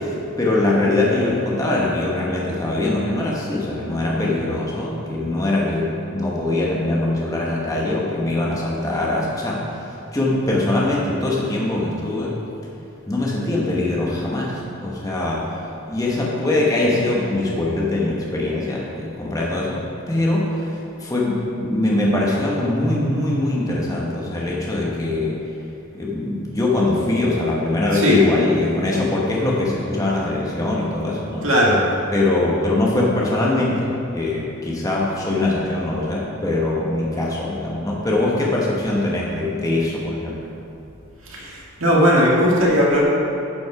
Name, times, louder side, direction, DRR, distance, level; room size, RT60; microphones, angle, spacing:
voice 1, 0.4-12.4 13.1-15.4 15.9-19.8 20.1-20.7 21.0-25.4 25.9-31.4 32.1-40.4, left 2 dB, 15° left, -4 dB, 1.1 m, -22 dB
voice 2, 31.4-31.8 41.3-43.0, equal, 65° right, -4 dB, 1.9 m, -17 dB
11.5 x 5.2 x 4.7 m, 2.8 s
head